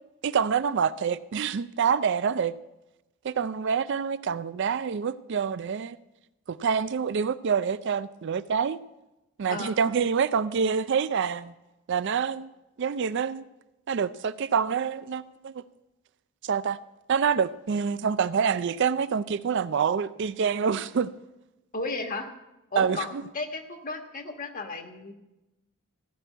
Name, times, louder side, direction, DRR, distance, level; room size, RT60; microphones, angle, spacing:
voice 1, 0.2-2.5 3.2-6.0 6.5-8.8 9.4-11.5 11.9-12.5 12.8-13.4 13.9-15.6 16.4-16.8 17.1-21.1 22.8-23.0, right 6 dB, 55° right, 0.4 m, -26 dB
voice 2, 9.5-10.0 21.7-22.3 22.7-25.1, left 3 dB, 40° left, 1.4 m, -34 dB
15.5 x 6.1 x 9.2 m
head